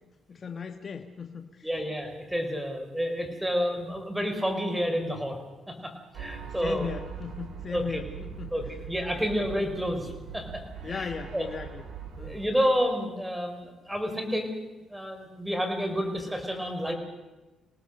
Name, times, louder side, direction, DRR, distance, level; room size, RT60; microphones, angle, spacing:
voice 1, 0.3-1.7 6.6-8.5 10.8-11.8 12.2-12.4, left 6 dB, 40° left, 6 dB, 1.4 m, -37 dB
voice 2, 1.6-5.4 5.7-6.9 7.7-8.0 8.5-11.5 12.2-14.5 14.9-16.9, equal, 5° right, 5 dB, 5.2 m, -30 dB
sound 1, 6.1-12.4, right 7 dB, 65° right, 5.2 m, -41 dB
26.0 x 18.5 x 6.8 m, 1.1 s
cardioid pair, 90°, 0 cm